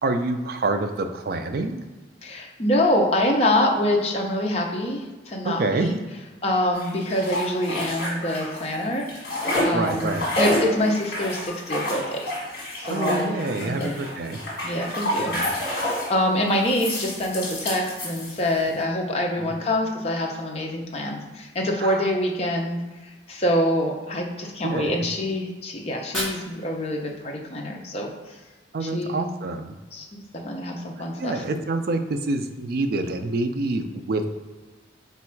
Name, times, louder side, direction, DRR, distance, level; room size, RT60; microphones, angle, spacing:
voice 1, 0.0-1.8 5.4-5.9 9.7-10.3 12.9-14.4 15.2-15.5 19.4-19.5 21.8-22.1 24.6-25.1 28.7-29.8 31.2-34.3, right 2 dB, 50° right, 7 dB, 0.3 m, -27 dB
voice 2, 2.2-5.9 6.4-9.1 9.6-12.3 12.8-13.3 13.6-13.9 14.6-15.3 16.1-22.8 23.3-28.1 28.9-29.2 29.9-31.3, left 1 dB, 30° left, 0 dB, 0.5 m, -25 dB
sound 1, 6.7-8.7 9.0-16.2 16.6-18.7, left 1 dB, 50° left, 1.3 m, -29 dB
Fire, 25.8-27.8, equal, ahead, 1.0 m, -36 dB
4.1 x 2.3 x 4.4 m, 1.2 s
head